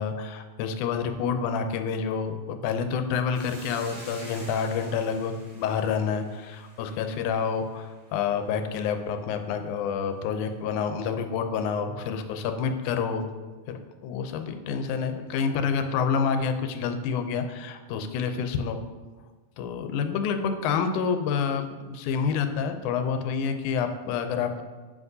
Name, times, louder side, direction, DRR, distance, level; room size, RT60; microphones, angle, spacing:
voice 1, 0.0-13.3 13.7-18.8 19.6-24.6, left 6 dB, 85° left, 7 dB, 2.0 m, -28 dB
Hiss, 3.3-7.8, right 1 dB, 30° right, 1.4 m, -47 dB
7.4 x 5.9 x 2.6 m, 1.4 s
omnidirectional pair, 3.4 m